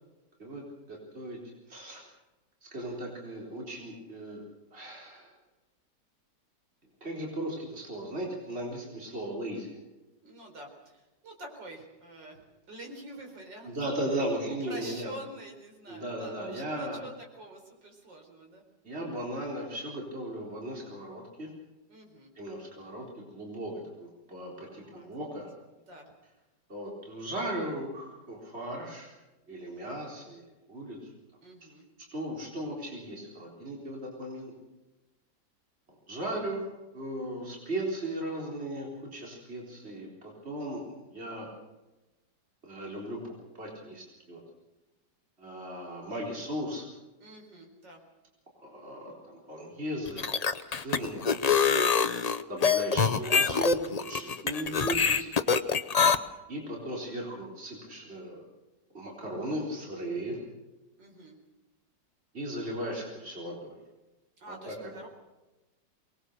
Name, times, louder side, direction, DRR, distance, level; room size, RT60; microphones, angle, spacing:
voice 1, 0.9-1.4 1.7-2.0 2.7-4.4 4.7-5.3 7.0-9.7 13.6-15.1 15.9-17.0 18.8-21.5 22.4-25.5 26.7-29.1 29.5-31.1 31.6-31.7 32.1-34.5 36.1-36.6 36.9-41.5 42.6-43.2 43.6-44.4 45.4-46.9 48.6-50.4 50.7-51.3 52.5-55.4 56.5-58.5 58.9-60.4 62.3-63.7 64.5-64.7, right 1 dB, 35° right, -2 dB, 4.4 m, -37 dB
voice 2, 10.2-13.8 14.6-18.6 21.9-22.3 24.6-25.4 25.9-26.1 31.4-31.9 47.2-48.0 51.4-51.8 61.0-61.4 64.4-65.1, right 1 dB, 85° right, 1 dB, 5.0 m, -47 dB
sound 1, 50.1-56.1, left 6 dB, 70° left, 0.3 m, -25 dB
24.0 x 20.0 x 6.7 m, 1.1 s
omnidirectional pair, 1.9 m